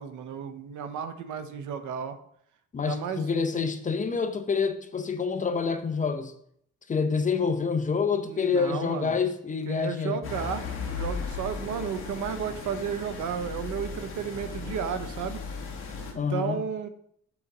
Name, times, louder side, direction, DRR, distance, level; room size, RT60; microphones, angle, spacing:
voice 1, 0.0-2.2 2.9-3.3 8.3-9.2 9.7-15.4 16.1-16.9, right 7 dB, 80° right, 0.9 m, -33 dB
voice 2, 2.7-6.3 6.9-10.2 16.1-16.6, left 5 dB, 25° left, 0.6 m, -27 dB
sound 1, 10.2-16.1, left 5 dB, 45° left, 1.8 m, -36 dB
7.1 x 4.0 x 5.9 m
cardioid pair, 135°, 30 cm